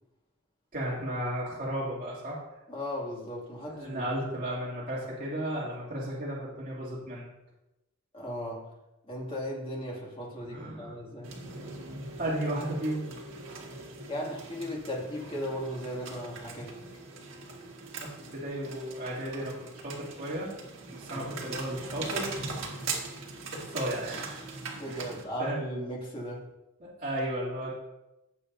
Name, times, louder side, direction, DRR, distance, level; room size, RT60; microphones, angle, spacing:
voice 1, 0.7-2.4 3.7-7.3 10.4-11.0 12.2-13.1 18.0-20.5 20.9-22.8 23.5-24.4 24.9-25.6 26.8-27.7, right 1 dB, 40° right, -7 dB, 2.9 m, -34 dB
voice 2, 2.7-4.0 8.1-8.6 9.1-11.3 14.1-16.8 21.1-21.3 24.8-26.5, equal, 25° left, -3 dB, 2.4 m, -36 dB
sound 1, 11.2-25.2, right 3 dB, 65° right, 1.8 m, -41 dB
16.5 x 6.8 x 2.7 m, 0.96 s
head